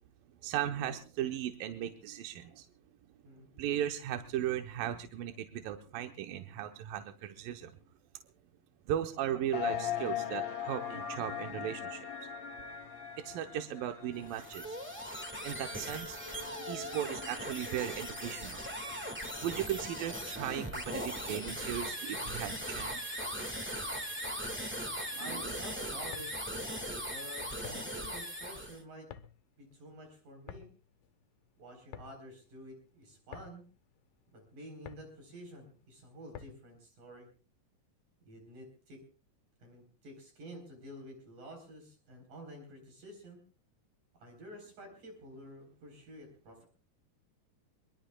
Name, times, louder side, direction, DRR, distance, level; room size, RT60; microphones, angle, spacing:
voice 1, 0.4-2.7 3.6-7.7 8.9-12.1 13.2-14.8 15.4-16.2 16.6-18.7 19.4-23.1 25.2-25.5, right 11 dB, 90° right, 5 dB, 2.7 m, -37 dB
sound 1, 9.5-20.9, left 8 dB, 50° left, 3.2 m, -42 dB
sound 2, 14.2-28.8, equal, 15° right, 0.4 m, -39 dB
voice 2, 25.2-26.3 27.0-29.1 29.6-30.7 31.6-33.7 34.3-37.3 38.3-39.0 39.6-43.4 44.1-46.6, right 1 dB, 65° right, 3 dB, 5.6 m, -50 dB
sound 3, 26.1-36.8, left 9 dB, 90° left, 2.7 m, -53 dB
23.5 x 23.0 x 2.3 m, 0.38 s
omnidirectional pair, 3.9 m